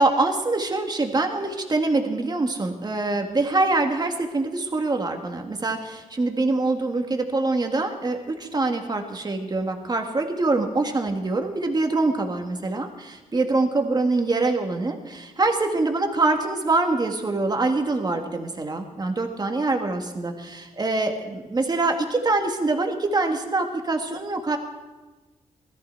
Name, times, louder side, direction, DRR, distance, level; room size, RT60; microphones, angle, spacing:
voice 1, 0.0-24.6, right 3 dB, 30° right, 4 dB, 1.8 m, -24 dB
17.5 x 14.0 x 4.5 m, 1.2 s
cardioid pair, 105°, 13 cm